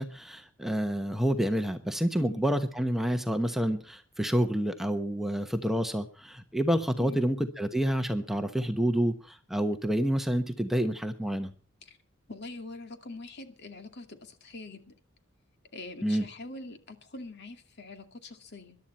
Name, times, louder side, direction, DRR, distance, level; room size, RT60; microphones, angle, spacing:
voice 1, 0.0-11.5 16.0-16.3, equal, ahead, 7 dB, 1.0 m, -28 dB
voice 2, 12.3-14.9 15.7-18.8, left 2 dB, 55° left, 7 dB, 2.3 m, -43 dB
21.5 x 12.0 x 4.3 m, 0.36 s
head